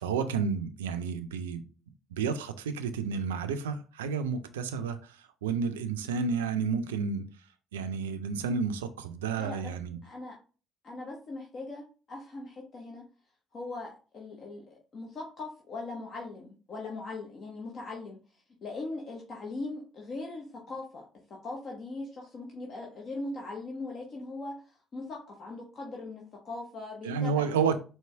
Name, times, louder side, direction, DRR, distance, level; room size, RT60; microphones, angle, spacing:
voice 1, 0.0-1.6 2.1-7.3 7.7-10.0 27.0-27.8, right 5 dB, 85° right, 0.4 m, -31 dB
voice 2, 9.4-9.7 10.0-10.4 10.8-13.1 13.5-27.8, left 2 dB, 50° left, 1.0 m, -40 dB
4.4 x 2.9 x 3.4 m
hypercardioid pair, 50°, 0 cm